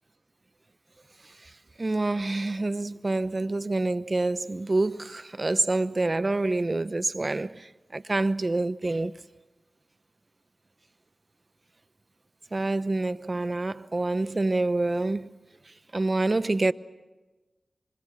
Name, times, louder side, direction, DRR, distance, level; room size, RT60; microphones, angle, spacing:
voice 1, 1.8-9.1 12.5-15.3 15.9-16.7, right 2 dB, 40° right, 0.9 m, -27 dB
27.0 x 25.0 x 6.5 m
cardioid pair, 45°, 0 cm